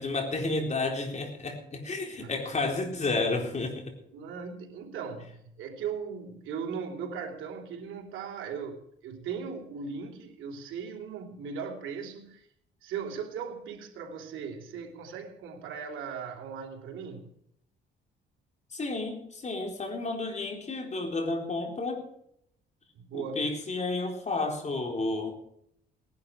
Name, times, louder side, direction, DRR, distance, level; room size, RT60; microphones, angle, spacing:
voice 1, 0.0-3.9 18.7-22.0 23.1-25.4, left 3 dB, 35° left, 4.1 m, -31 dB
voice 2, 4.1-12.5 12.8-17.3 22.9-23.5, right 6 dB, 80° right, 3.0 m, -38 dB
18.5 x 11.5 x 4.9 m
cardioid pair, 90°, 20 cm